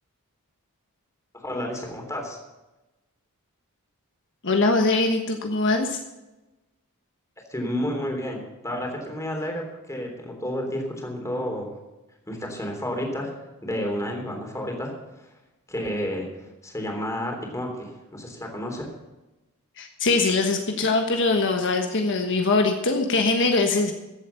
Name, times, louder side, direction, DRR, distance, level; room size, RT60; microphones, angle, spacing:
voice 1, 1.4-2.4 7.5-11.8 12.3-13.3 13.6-14.9 15.7-16.3 16.6-18.9, equal, 15° left, 2 dB, 3.4 m, -31 dB
voice 2, 4.4-6.0 19.8-23.9, left 3 dB, 55° left, 4 dB, 1.3 m, -22 dB
15.0 x 8.2 x 6.9 m, 1.0 s
head